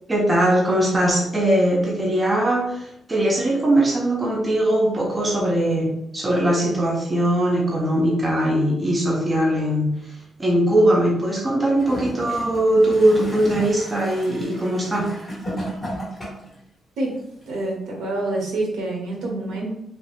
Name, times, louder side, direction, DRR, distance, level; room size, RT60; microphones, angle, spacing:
voice 1, 0.1-15.1, right 1 dB, 20° right, -2 dB, 0.4 m, -20 dB
Gurgling / Toilet flush, 11.7-16.6 17.4-17.5, right 1 dB, 10° left, 1.2 m, -33 dB
voice 2, 17.5-19.7, right 2 dB, 85° right, 0 dB, 0.8 m, -27 dB
2.9 x 2.4 x 3.1 m, 0.79 s
wide cardioid pair, 165°, 0 cm